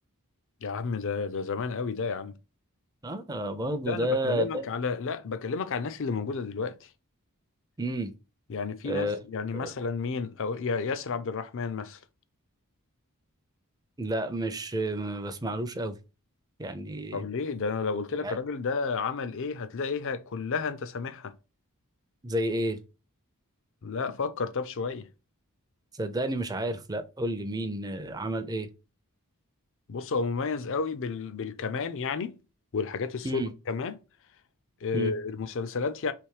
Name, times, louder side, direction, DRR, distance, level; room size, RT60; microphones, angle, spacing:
voice 1, 0.6-2.4 3.8-6.9 8.5-12.0 17.1-21.3 23.8-25.1 29.9-32.4 32.7-34.0 34.8-36.1, left 5 dB, 60° left, 0.5 m, -31 dB
voice 2, 3.0-4.7 7.8-8.1 8.9-9.2 9.5-9.7 14.0-15.9 16.6-17.2 18.2-18.4 22.2-22.8 26.0-28.7 33.2-33.5 34.9-35.1, right 1 dB, 15° right, 0.5 m, -31 dB
3.4 x 3.1 x 4.6 m
head